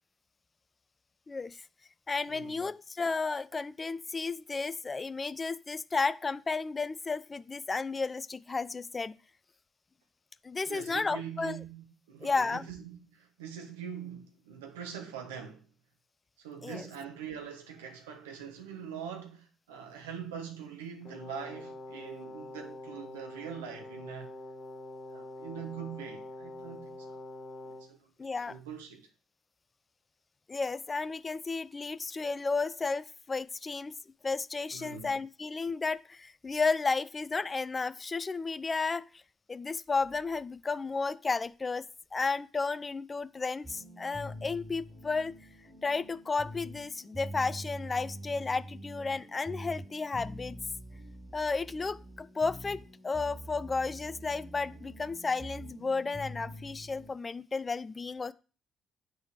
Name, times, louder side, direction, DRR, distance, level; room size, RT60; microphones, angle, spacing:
voice 1, 1.3-1.6 2.1-9.2 10.4-11.6 12.2-12.7 16.6-16.8 28.2-28.6 30.5-33.9 34.2-39.2 39.5-41.9 42.1-45.3 45.8-50.6 51.3-58.3, left 4 dB, 30° left, 0.4 m, -33 dB
voice 2, 2.3-2.7 10.7-15.7 16.4-24.3 25.1-27.2 27.6-28.1 28.5-29.1 34.7-35.2, right 7 dB, 75° right, 1.1 m, -43 dB
Brass instrument, 21.0-27.9, left 1 dB, 45° left, 1.5 m, -45 dB
sound 1, 43.6-57.1, equal, 15° right, 5.0 m, -45 dB
7.9 x 6.2 x 4.7 m
figure-of-eight pair, 40°, 0 cm